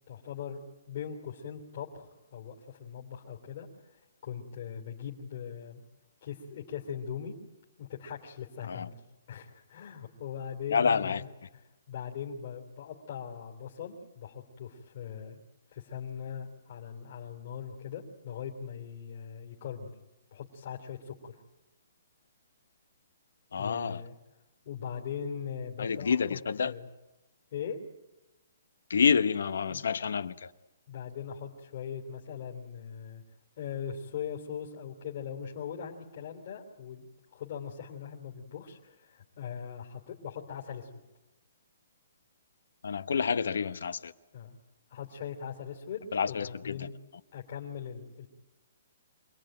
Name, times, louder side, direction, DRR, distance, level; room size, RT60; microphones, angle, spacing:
voice 1, 0.1-0.6 0.9-5.8 6.2-7.4 7.8-9.0 9.3-11.3 11.9-15.4 15.7-19.9 20.3-21.3 23.6-24.2 24.6-26.4 26.6-26.9 27.5-27.8 29.7-29.9 30.9-33.2 33.6-41.0 44.3-44.6 44.9-46.9 47.3-48.3, left 8 dB, 45° left, 3.2 m, -40 dB
voice 2, 10.7-11.2 23.5-24.0 25.8-26.7 28.9-30.5 42.8-44.1 46.1-46.9, left 6 dB, 80° left, 1.0 m, -28 dB
26.5 x 19.5 x 9.2 m
hypercardioid pair, 170°, 0 cm